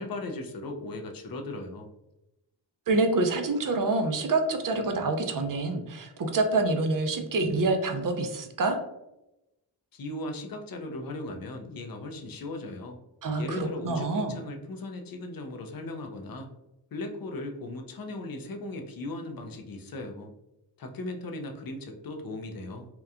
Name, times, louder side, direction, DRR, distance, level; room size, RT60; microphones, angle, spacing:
voice 1, 0.0-1.9 9.9-13.0 13.4-16.5 16.9-20.3 20.8-22.9, left 2 dB, 50° left, 4 dB, 0.5 m, -37 dB
voice 2, 2.9-8.8 13.2-14.4, right 2 dB, 45° right, 6 dB, 0.4 m, -27 dB
2.8 x 2.1 x 2.4 m, 0.91 s
wide cardioid pair, 55°, 46 cm